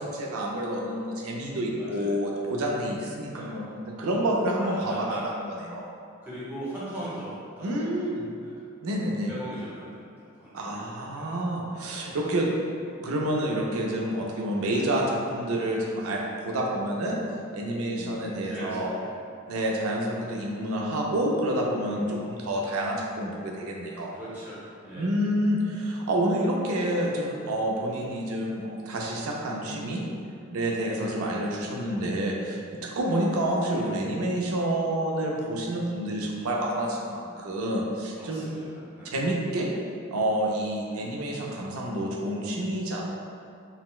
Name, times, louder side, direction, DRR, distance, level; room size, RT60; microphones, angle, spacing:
voice 1, 0.0-5.9 7.6-8.3 8.8-9.3 10.5-12.5 13.0-17.2 17.5-18.9 19.5-24.1 24.9-30.0 30.5-38.5 39.1-39.7 40.1-43.1, right 1 dB, 85° right, -1 dB, 0.5 m, -28 dB
voice 2, 1.4-2.2 3.3-3.6 4.6-5.2 6.2-8.6 9.3-11.4 14.7-14.9 17.8-19.1 19.5-19.7 21.8-22.3 24.1-25.2 30.9-31.2 38.1-39.3 40.8-41.1, right 1 dB, 10° right, -11 dB, 0.8 m, -41 dB
4.0 x 2.1 x 2.3 m, 2.4 s
head